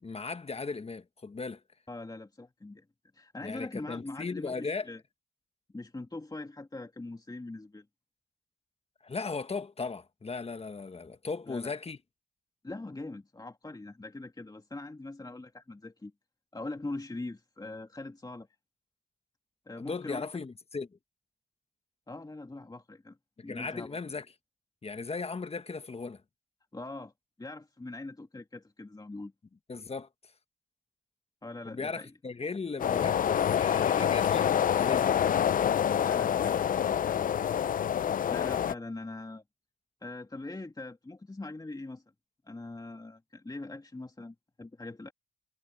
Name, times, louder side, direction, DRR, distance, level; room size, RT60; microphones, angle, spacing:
voice 1, 0.0-1.6 3.4-4.9 9.0-12.0 19.8-20.9 23.5-24.2 24.8-26.2 29.7-30.1 31.6-35.1, left 4 dB, 40° left, 1.5 m, -37 dB
voice 2, 1.9-2.9 3.1-5.0 5.7-7.9 11.5-11.7 12.6-16.1 16.5-18.5 19.7-20.3 22.1-23.2 23.4-24.0 26.7-27.1 27.4-29.3 31.4-32.1 36.0-37.3 38.3-39.4 40.0-42.0 42.4-45.1, left 2 dB, 25° left, 2.4 m, -42 dB
sound 1, 32.8-38.7, left 9 dB, 60° left, 0.5 m, -26 dB
supercardioid pair, 45°, 16 cm